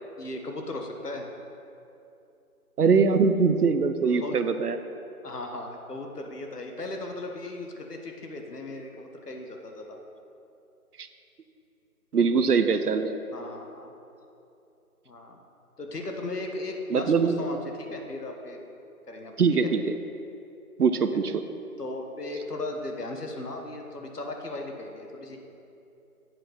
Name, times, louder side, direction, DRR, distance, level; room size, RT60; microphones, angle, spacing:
voice 1, 0.2-1.3 4.2-4.4 5.2-10.0 13.3-13.9 15.0-15.4 15.8-18.6 19.1-19.3 19.6-19.7 21.8-25.4, left 2 dB, 90° left, 3 dB, 1.3 m, -37 dB
voice 2, 2.8-4.8 12.1-13.2 16.9-17.4 19.4-19.8 20.8-21.5, right 5 dB, 80° right, 9 dB, 0.7 m, -22 dB
7.6 x 6.7 x 4.3 m, 2.7 s
figure-of-eight pair, 175°, 45 cm